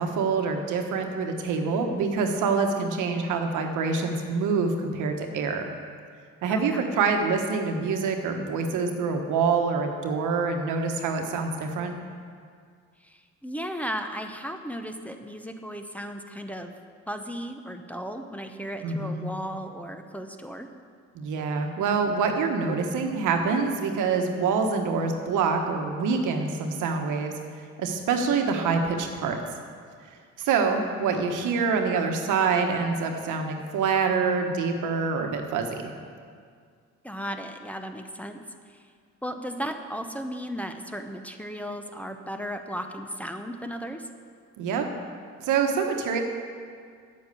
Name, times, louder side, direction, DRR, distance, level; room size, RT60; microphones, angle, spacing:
voice 1, 0.0-5.7 6.4-11.9 18.8-19.3 21.1-27.3 27.8-29.4 30.4-35.9 44.6-44.9 45.4-46.2, right 5 dB, 90° right, 4 dB, 1.3 m, -26 dB
voice 2, 6.5-6.8 13.0-16.7 17.1-20.7 37.0-38.8 39.2-44.1, equal, 5° left, 6 dB, 0.8 m, -35 dB
9.0 x 8.6 x 6.9 m, 2.1 s
cardioid pair, 90°, 30 cm